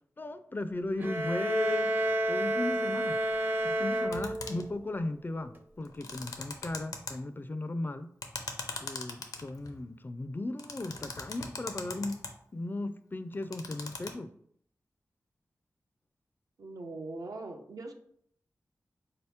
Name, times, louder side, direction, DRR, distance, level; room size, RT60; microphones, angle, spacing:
voice 1, 0.2-1.9 2.3-3.2 3.6-8.1 8.8-12.2 12.5-14.3, left 2 dB, 35° left, 11 dB, 0.4 m, -36 dB
sound 1, 1.0-4.8, right 1 dB, 35° right, 0.6 m, -30 dB
sound 2, 4.1-4.7 5.8-7.1 8.2-9.8 10.6-12.3 13.3-14.1, left 4 dB, 80° left, 0.6 m, -40 dB
voice 2, 16.6-17.9, right 2 dB, 75° right, 3 dB, 0.6 m, -41 dB
4.0 x 2.8 x 3.4 m, 0.65 s
cardioid pair, 40°, 6 cm